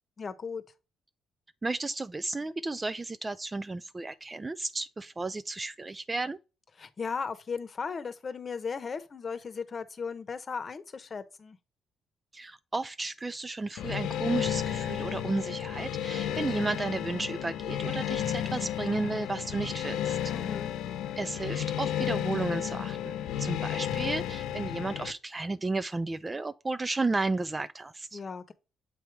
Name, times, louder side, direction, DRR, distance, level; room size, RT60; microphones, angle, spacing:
voice 1, 0.2-0.6 6.8-11.6 20.3-20.7 28.1-28.5, left 5 dB, 40° left, 0.9 m, -36 dB
voice 2, 1.6-6.4 12.3-20.3 21.2-28.2, right 3 dB, 20° right, 0.3 m, -33 dB
sound 1, 13.8-25.1, left 10 dB, 85° left, 0.6 m, -33 dB
7.6 x 3.3 x 4.6 m
cardioid pair, 90°, 0 cm